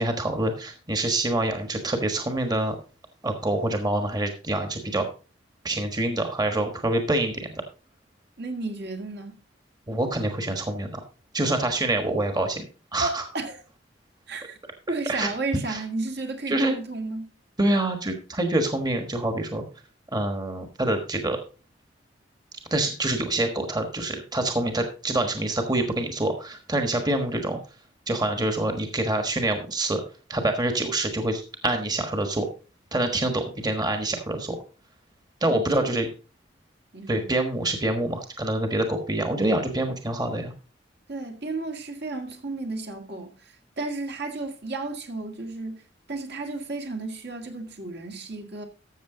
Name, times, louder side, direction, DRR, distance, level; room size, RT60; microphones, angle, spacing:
voice 1, 0.0-2.7 3.2-5.0 5.6-7.6 9.9-11.0 11.3-12.6 12.9-13.2 15.1-15.3 15.7-15.8 16.5-16.8 17.6-19.6 20.1-21.4 22.7-27.6 28.1-30.0 30.3-32.5 32.9-34.6 35.4-36.1 37.1-40.5, right 1 dB, 20° right, 1.3 m, -26 dB
voice 2, 8.4-9.4 13.0-13.6 14.3-14.6 14.9-17.3 35.4-35.9 36.9-37.3 41.1-45.8 46.1-48.7, right 3 dB, 60° right, 1.9 m, -33 dB
13.5 x 6.9 x 3.8 m
head